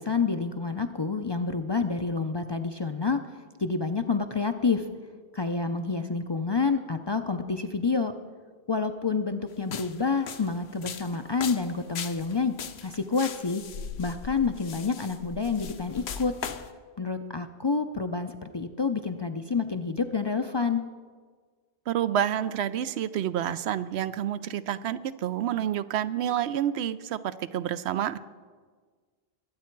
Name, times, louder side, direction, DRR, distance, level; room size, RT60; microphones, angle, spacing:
voice 1, 0.0-4.9 5.3-8.1 8.7-12.6 12.8-13.6 14.0-16.3 17.0-20.8, left 4 dB, 40° left, 8 dB, 0.4 m, -28 dB
sound 1, 9.6-16.7, left 7 dB, 80° left, 1.0 m, -39 dB
voice 2, 21.9-28.2, right 10 dB, 90° right, 14 dB, 0.8 m, -29 dB
21.5 x 8.4 x 4.5 m, 1.5 s
omnidirectional pair, 1.1 m